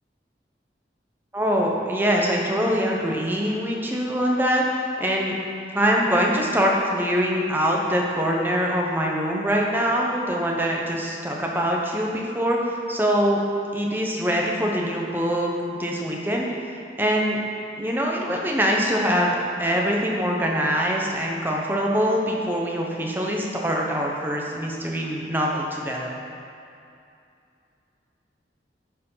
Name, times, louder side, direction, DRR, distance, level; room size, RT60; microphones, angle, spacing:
voice 1, 1.3-5.4 5.7-13.4 13.7-17.4 17.8-26.1, equal, 10° right, -1 dB, 0.9 m, -24 dB
10.0 x 4.7 x 5.7 m, 2.6 s
head